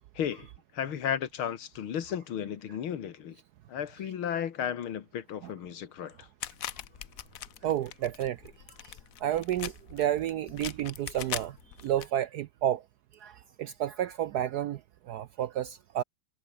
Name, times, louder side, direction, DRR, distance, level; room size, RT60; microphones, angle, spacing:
voice 1, 0.2-0.5 0.7-3.4 3.7-6.3, left 9 dB, 85° left, 2.4 m, -34 dB
sound 1, 6.4-12.1, left 11 dB, 60° left, 1.0 m, -41 dB
voice 2, 7.6-8.4 8.8-12.8 13.1-16.0, right 11 dB, 75° right, 0.9 m, -31 dB
omnidirectional pair, 2.2 m